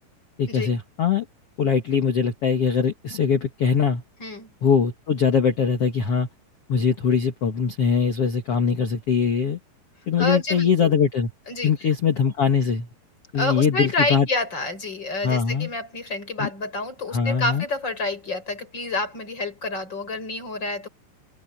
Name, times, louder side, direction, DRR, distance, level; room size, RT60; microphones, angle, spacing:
voice 1, 0.4-1.2 1.6-4.0 4.6-6.3 6.7-9.6 10.1-11.3 11.6-12.9 13.3-14.3 15.2-15.7 16.4-16.5 17.1-17.6, left 6 dB, 60° left, 1.5 m, -22 dB
voice 2, 10.2-10.9 11.5-11.7 13.3-20.9, left 2 dB, 20° left, 6.5 m, -28 dB
omnidirectional pair, 5.6 m